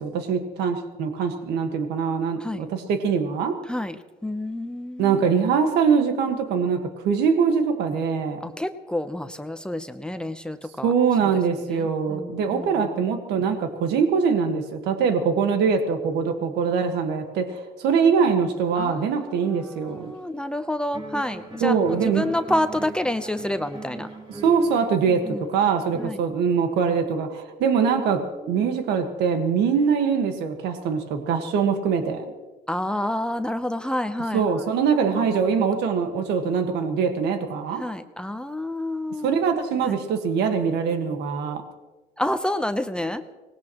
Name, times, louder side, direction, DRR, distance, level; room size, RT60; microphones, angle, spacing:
voice 1, 0.0-3.6 5.0-8.4 10.8-20.1 21.6-22.3 24.4-32.2 34.3-37.8 39.2-41.6, right 6 dB, 80° right, 6 dB, 1.6 m, -23 dB
voice 2, 3.7-5.2 8.4-10.9 11.2-11.3 11.7-12.9 18.8-24.1 25.1-25.5 26.0-26.2 28.4-28.7 32.7-35.6 37.8-39.4 39.8-40.0 42.2-43.2, left 1 dB, 5° left, 8 dB, 0.8 m, -29 dB
sound 1, 19.9-20.6 20.9-26.1, right 2 dB, 30° right, 3.6 m, -40 dB
24.5 x 19.5 x 3.0 m, 1.3 s
cardioid pair, 110°, 17 cm